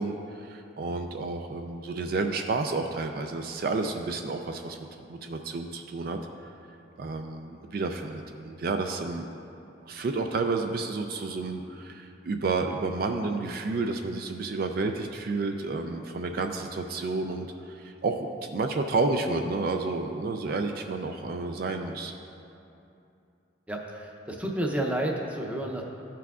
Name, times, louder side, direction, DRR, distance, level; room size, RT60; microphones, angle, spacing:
voice 1, 0.0-6.2 7.0-9.3 9.9-22.1, right 3 dB, 50° right, 5 dB, 0.4 m, -30 dB
voice 2, 23.7-25.8, right 1 dB, 10° right, 0 dB, 0.6 m, -30 dB
13.5 x 5.9 x 2.4 m, 2.7 s
head